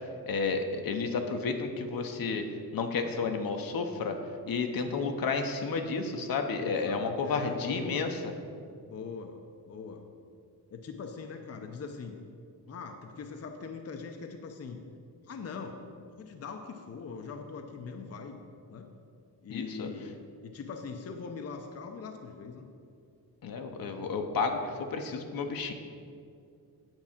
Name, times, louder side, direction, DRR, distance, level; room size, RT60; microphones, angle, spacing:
voice 1, 0.3-2.5 2.7-4.1 4.5-8.2 19.5-19.9 23.4-25.7, left 4 dB, 65° left, 5 dB, 0.9 m, -31 dB
voice 2, 6.6-8.1 8.8-10.1 10.7-12.2 12.7-14.8 15.2-18.4 18.7-18.9 19.4-20.2 20.4-22.7, left 5 dB, 40° left, 4 dB, 0.7 m, -41 dB
9.1 x 4.7 x 7.2 m, 2.4 s
cardioid pair, 120°, 37 cm